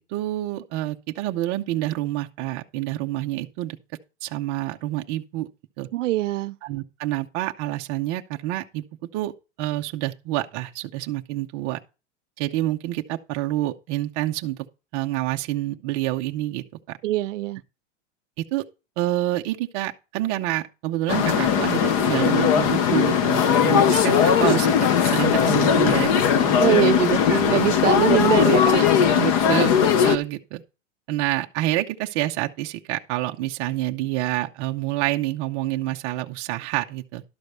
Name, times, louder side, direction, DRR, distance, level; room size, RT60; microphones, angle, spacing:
voice 1, 0.0-3.8 4.2-5.5 5.8-5.9 6.6-8.8 9.1-9.3 9.6-11.8 12.4-14.6 14.9-16.6 18.4-18.6 19.0-24.7 25.0-26.5 27.3-27.4 29.1-30.6 31.1-37.2, right 15 dB, 25° right, 0.5 m, -27 dB
voice 2, 5.9-6.6 17.0-17.6 26.6-29.0, right 15 dB, 80° right, 0.6 m, -23 dB
sound 1, 21.1-30.2, left 8 dB, 30° left, 0.6 m, -19 dB
12.0 x 4.6 x 6.6 m
supercardioid pair, 175°, 37 cm